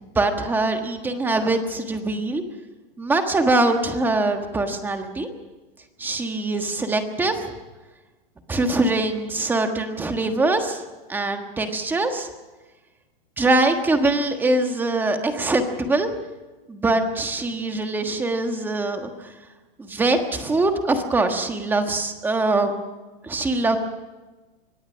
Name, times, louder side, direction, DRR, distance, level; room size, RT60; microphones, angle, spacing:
voice 1, 0.0-2.4 3.0-5.3 6.0-7.5 8.5-10.8 11.1-12.3 13.4-16.1 16.7-19.1 19.8-22.7 23.2-23.8, right 2 dB, 5° right, 6 dB, 1.4 m, -23 dB
24.0 x 19.0 x 6.3 m, 1.2 s
supercardioid pair, 170°, 30 cm